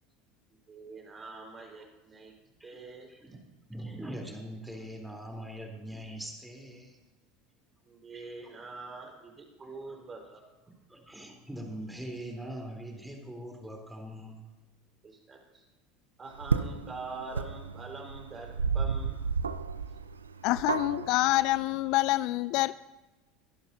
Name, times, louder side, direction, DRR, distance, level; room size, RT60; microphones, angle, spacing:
voice 1, 0.7-2.3 2.6-3.4 7.8-10.4 10.7-10.8 15.0-15.6 16.2-19.2, right 3 dB, 30° right, 1 dB, 4.6 m, -45 dB
voice 2, 2.6-3.3 3.7-7.0 9.9-10.0 10.9-14.5, right 1 dB, 5° right, 1 dB, 3.7 m, -42 dB
sound 1, 16.4-21.6, right 5 dB, 90° right, 0.5 m, -32 dB
voice 3, 20.4-22.8, left 18 dB, 60° left, 18 dB, 0.3 m, -27 dB
22.5 x 12.0 x 2.8 m, 1.1 s
hypercardioid pair, 75°, 0 cm